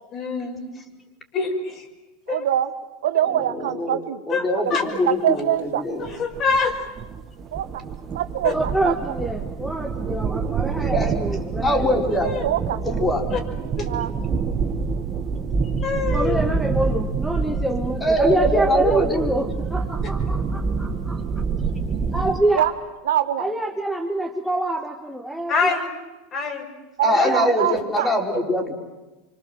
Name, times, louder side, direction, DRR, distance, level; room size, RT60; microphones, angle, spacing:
voice 1, 0.1-0.6 1.3-1.9 2.3-2.5 4.3-4.4 4.7-4.8 6.2-6.9 8.4-8.5 12.2-12.4 13.3-13.4 13.8-13.9 15.8-16.4 20.0-20.1 25.5-25.9 26.3-26.7 27.1-27.4, left 4 dB, 40° left, 3 dB, 6.1 m, -25 dB
voice 2, 2.3-2.7 3.0-4.2 5.0-5.8 7.5-7.8 8.1-8.9 12.2-12.8 13.3-14.1 20.8-21.0 22.5-22.7 23.0-23.5 27.0-28.1, right 11 dB, 80° right, 9 dB, 1.5 m, -24 dB
voice 3, 3.3-6.1 8.4-8.6 10.7-11.1 11.6-12.3 12.8-13.2 18.0-19.3 27.0-28.7, equal, 20° left, 2 dB, 4.8 m, -23 dB
sound 1, 6.0-22.4, right 5 dB, 30° right, 2.4 m, -27 dB
voice 4, 8.5-12.0 16.1-21.2 22.1-22.7 23.4-25.8 27.2-27.7, right 1 dB, ahead, 3 dB, 1.8 m, -26 dB
25.5 x 25.5 x 7.8 m, 1.1 s
supercardioid pair, 110°, 0 cm